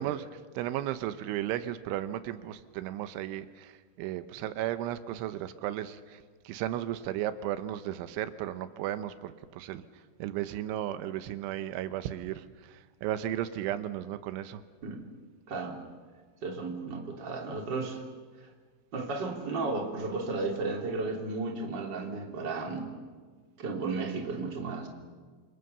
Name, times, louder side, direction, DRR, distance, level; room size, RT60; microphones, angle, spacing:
voice 1, 0.0-9.8 10.2-14.6, right 12 dB, 85° right, 12 dB, 3.3 m, -35 dB
voice 2, 15.5-15.8 16.4-18.0 18.4-18.5 18.9-22.9 23.6-24.9, right 3 dB, 25° right, 2 dB, 3.0 m, -34 dB
29.0 x 27.0 x 6.9 m, 1.5 s
omnidirectional pair, 5.4 m